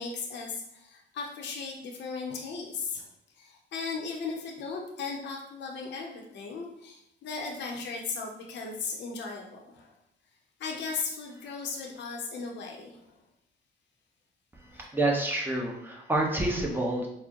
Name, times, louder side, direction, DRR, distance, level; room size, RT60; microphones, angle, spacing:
voice 1, 0.0-3.1 3.3-9.9 10.6-13.2 14.7-14.9, left 4 dB, 65° left, 0 dB, 0.7 m, -37 dB
voice 2, 14.5-17.1, right 2 dB, 10° right, -1 dB, 0.8 m, -28 dB
4.4 x 2.1 x 2.9 m, 0.81 s
cardioid pair, 90°, 20 cm